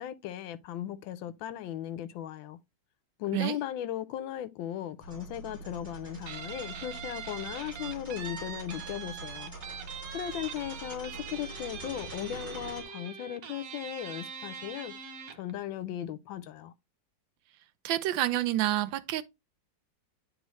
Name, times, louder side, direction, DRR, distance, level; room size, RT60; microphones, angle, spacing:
voice 1, 0.0-2.6 3.2-9.5 10.1-14.9 15.3-16.7, left 11 dB, 90° left, 1.4 m, -37 dB
sound 1, 5.0-12.8, right 2 dB, 15° right, 3.0 m, -45 dB
Guitar, 6.3-15.5, right 7 dB, 55° right, 1.1 m, -43 dB
voice 2, 17.8-19.2, right 14 dB, 90° right, 1.4 m, -28 dB
9.5 x 3.4 x 3.0 m
omnidirectional pair, 2.0 m